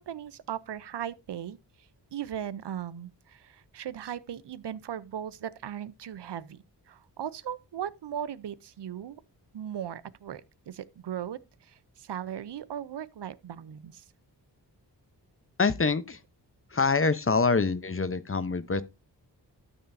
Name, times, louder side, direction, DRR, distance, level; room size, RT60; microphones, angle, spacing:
voice 1, 0.0-9.2 9.5-14.1, right 10 dB, 70° right, 0.8 m, -38 dB
voice 2, 15.6-16.2 16.7-18.8, left 4 dB, 30° left, 0.9 m, -25 dB
12.5 x 6.9 x 2.7 m
cardioid pair, 55°, 42 cm